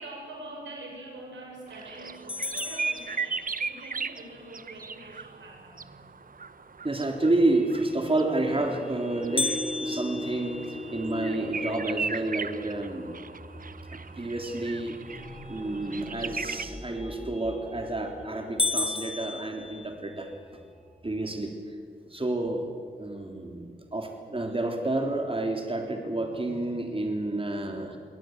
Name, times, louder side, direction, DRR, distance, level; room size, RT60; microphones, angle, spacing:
voice 1, 0.0-6.1, right 2 dB, 80° right, 0 dB, 6.4 m, -44 dB
sound 1, 1.7-16.6, right 5 dB, 45° right, 1.0 m, -38 dB
sound 2, 2.3-3.9 9.4-11.5 12.0-12.1 12.6-12.7 13.4-13.7 17.3-17.7 18.1-18.2 18.6-20.3, left 3 dB, 30° left, 1.1 m, -33 dB
voice 2, 6.8-9.5 9.8-13.1 13.9-15.0 15.5-20.3 21.0-21.7 22.1-22.7 23.0-28.0, right 2 dB, 30° right, 3 dB, 3.4 m, -29 dB
sound 3, 7.2-21.4, left 1 dB, ahead, 6.8 m, -41 dB
23.5 x 18.0 x 8.0 m, 2.1 s
supercardioid pair, 40°, 19 cm